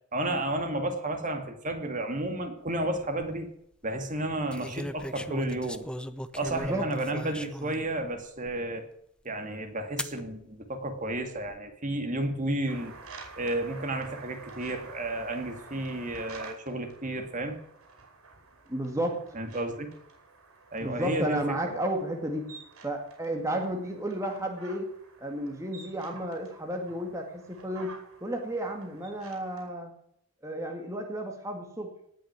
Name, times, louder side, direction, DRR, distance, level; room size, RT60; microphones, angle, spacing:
voice 1, 0.1-3.5 3.8-5.8 6.3-8.8 9.2-12.9 13.4-17.6 19.3-19.9 20.7-21.6, right 1 dB, 35° right, 5 dB, 2.3 m, -32 dB
sound 1, 2.8-3.3 4.5-7.8 8.5-8.6 10.0-10.2 11.1-11.6, left 1 dB, 5° left, 0.7 m, -38 dB
voice 2, 6.5-6.9 18.7-19.2 20.8-22.5 22.8-24.9 25.2-29.9 30.4-31.9, right 1 dB, 15° right, 2 dB, 2.0 m, -32 dB
sound 2, 12.7-29.7, right 3 dB, 80° right, 5.2 m, -50 dB
18.5 x 6.4 x 9.4 m, 0.73 s
head